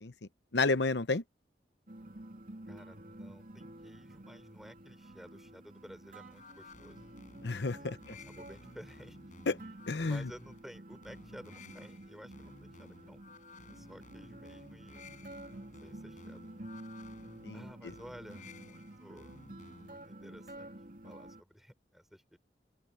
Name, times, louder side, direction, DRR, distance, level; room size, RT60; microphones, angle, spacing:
voice 1, 0.5-1.2 7.4-8.2 9.5-9.6 9.9-10.3 17.4-17.9, left 3 dB, 70° left, 0.9 m, -31 dB
sound 1, 1.9-21.4, right 1 dB, 50° right, 3.2 m, -50 dB
voice 2, 2.7-7.1 7.8-9.2 10.0-13.2 13.7-15.0 15.8-16.5 17.5-19.4 19.8-20.7 21.0-22.4, equal, ahead, 4.3 m, -53 dB
sound 2, 6.3-20.1, left 3 dB, 45° left, 5.0 m, -55 dB
open air
head